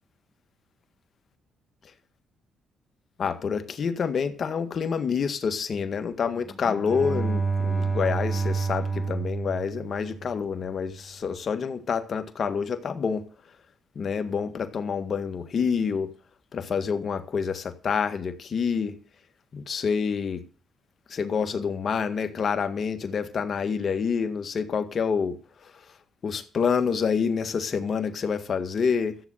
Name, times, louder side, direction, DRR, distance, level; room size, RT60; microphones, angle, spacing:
voice 1, 3.2-13.3 14.0-16.1 16.5-18.9 19.5-20.4 21.1-25.4 26.2-29.2, left 6 dB, 50° left, 1.7 m, -27 dB
Bowed string instrument, 6.5-10.5, right 4 dB, 5° left, 5.0 m, -29 dB
14.0 x 8.8 x 6.4 m
cardioid pair, 90°, 0 cm